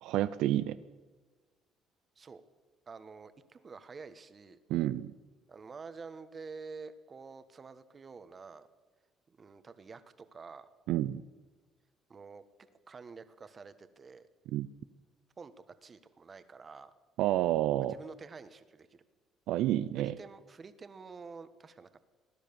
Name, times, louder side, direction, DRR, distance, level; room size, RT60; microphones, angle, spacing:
voice 1, 0.0-0.8 4.7-5.1 10.9-11.2 14.5-14.7 17.2-17.9 19.5-20.1, right 14 dB, 80° right, 13 dB, 0.5 m, -29 dB
voice 2, 2.9-4.6 5.5-8.7 9.3-10.7 12.1-12.4 12.9-14.3 15.4-15.5 15.8-16.9 17.8-19.0 20.0-21.9, right 4 dB, 35° right, 12 dB, 1.3 m, -48 dB
18.5 x 10.5 x 7.0 m, 1.3 s
supercardioid pair, 85°, 0 cm